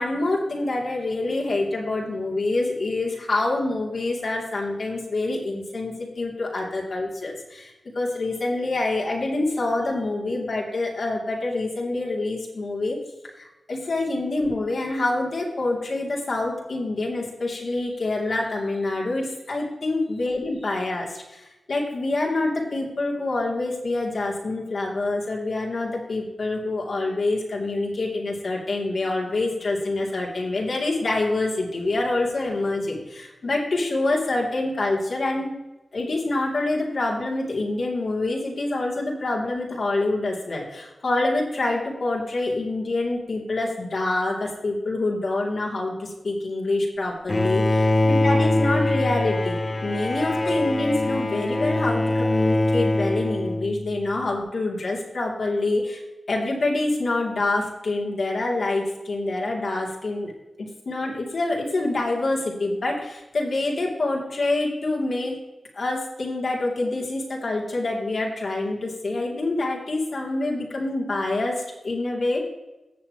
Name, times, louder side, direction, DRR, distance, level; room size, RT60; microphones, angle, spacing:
voice 1, 0.0-13.0 13.4-35.6 35.9-56.0 56.3-60.3 60.6-65.3 65.7-72.4, left 2 dB, 65° left, -3 dB, 2.9 m, -26 dB
Bowed string instrument, 47.3-54.1, left 2 dB, 35° left, 1.0 m, -23 dB
17.5 x 7.0 x 3.1 m, 1.0 s
wide cardioid pair, 80°, 0 cm